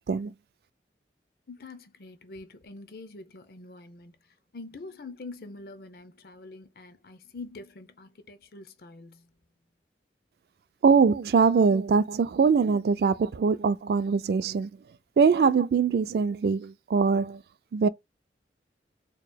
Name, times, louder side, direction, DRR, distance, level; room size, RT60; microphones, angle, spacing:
voice 1, 1.5-9.3, left 3 dB, 55° left, 0.6 m, -45 dB
voice 2, 10.8-14.7 15.2-17.4 17.7-17.9, right 5 dB, 60° right, 0.3 m, -22 dB
4.6 x 2.9 x 2.2 m
head